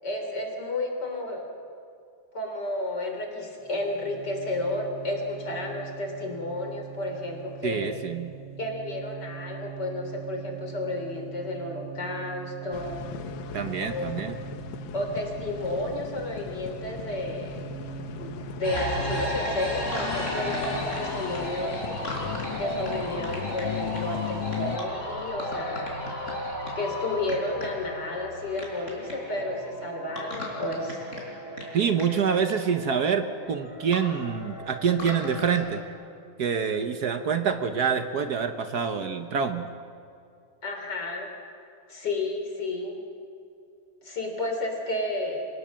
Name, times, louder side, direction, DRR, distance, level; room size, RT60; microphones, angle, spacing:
voice 1, 0.0-1.5 2.3-7.9 8.6-13.0 13.8-14.3 14.9-17.7 18.2-18.3 18.6-21.8 22.6-26.0 26.8-31.0 40.6-41.3 41.9-43.0 44.0-45.5, left 2 dB, 60° left, 3 dB, 4.1 m, -32 dB
sound 1, 3.6-21.9, right 11 dB, 10° right, 2.4 m, -43 dB
voice 2, 7.6-8.3 13.5-14.4 31.7-35.8 36.4-39.7, right 6 dB, 60° right, 8 dB, 1.4 m, -26 dB
sound 2, 12.7-24.8, left 9 dB, 80° left, 1.6 m, -37 dB
sound 3, 18.6-35.8, equal, 40° left, 4.7 m, -34 dB
25.0 x 18.0 x 7.5 m, 2.5 s
omnidirectional pair, 2.1 m